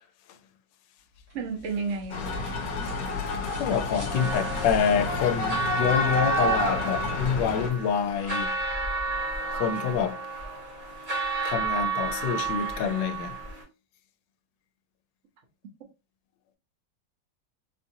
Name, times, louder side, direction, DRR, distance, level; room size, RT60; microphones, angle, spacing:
sound 1, 1.2-6.1, left 2 dB, 80° right, 2.5 m, -43 dB
voice 1, 1.3-2.3, right 4 dB, 50° right, 1.1 m, -31 dB
sound 2, 2.1-7.7, left 3 dB, 60° left, 1.1 m, -29 dB
voice 2, 3.6-8.6 9.5-10.3 11.4-13.4, left 7 dB, 80° left, 1.2 m, -27 dB
sound 3, 4.1-13.6, right 4 dB, 30° right, 1.3 m, -31 dB
4.4 x 2.5 x 2.7 m
omnidirectional pair, 2.0 m